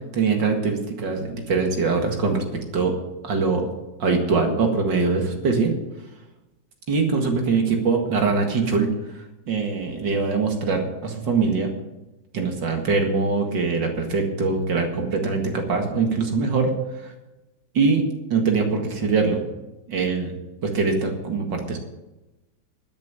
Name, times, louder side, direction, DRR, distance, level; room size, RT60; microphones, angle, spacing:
voice 1, 0.1-2.4 2.7-2.9 3.2-3.7 4.0-5.7 6.9-8.9 9.5-11.7 12.3-16.7 17.0-17.1 17.7-18.0 18.3-19.4 19.9-20.3 20.6-21.8, right 4 dB, 80° right, 3 dB, 2.5 m, -22 dB
12.0 x 7.3 x 8.8 m, 1.0 s
omnidirectional pair, 2.0 m